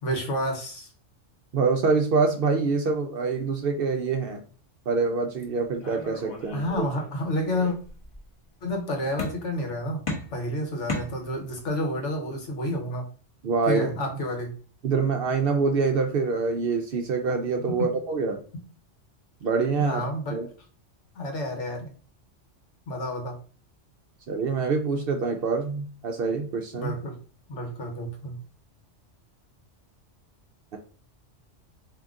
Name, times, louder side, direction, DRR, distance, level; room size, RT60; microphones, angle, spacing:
voice 1, 0.0-0.9 6.5-7.8 8.6-10.0 10.3-13.1 13.7-14.5 17.7-17.9 19.8-20.4 21.1-21.9 22.9-23.4 26.8-27.1 27.5-28.4, left 1 dB, 70° left, 2 dB, 1.3 m, -30 dB
voice 2, 1.5-4.4 4.9-6.9 13.4-14.2 14.8-18.4 19.4-20.0 20.3-20.5 24.3-26.9 30.7-30.8, right 4 dB, 60° right, 4 dB, 0.6 m, -25 dB
sound 1, 5.8-7.2 7.5-8.2 9.2-9.7 10.1-11.7, left 2 dB, 30° left, 1.0 m, -36 dB
3.7 x 2.8 x 3.5 m, 0.40 s
omnidirectional pair, 1.3 m